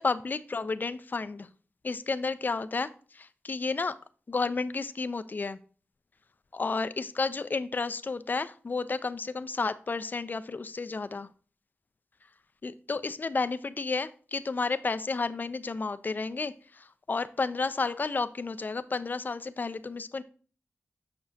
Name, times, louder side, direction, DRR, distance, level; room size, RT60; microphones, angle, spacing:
voice 1, 0.0-1.5 1.8-2.9 3.1-3.9 4.3-5.6 6.5-11.3 12.6-20.2, left 4 dB, 40° left, 13 dB, 0.4 m, -31 dB
6.8 x 5.9 x 2.7 m, 0.41 s
wide cardioid pair, 80°, 5 cm